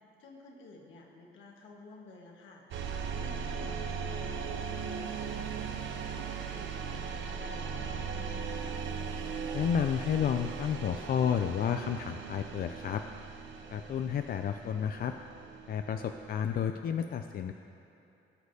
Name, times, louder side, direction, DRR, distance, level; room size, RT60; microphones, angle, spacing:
voice 1, 0.0-2.6 3.1-8.8, left 2 dB, 75° left, 0 dB, 1.4 m, -53 dB
sound 1, 2.7-16.6, right 6 dB, 70° right, 0.7 m, -38 dB
voice 2, 9.5-13.0 13.7-15.1 15.7-17.5, left 8 dB, 50° left, 6 dB, 0.4 m, -31 dB
18.5 x 6.2 x 2.8 m, 2.9 s
cardioid pair, 90°, 20 cm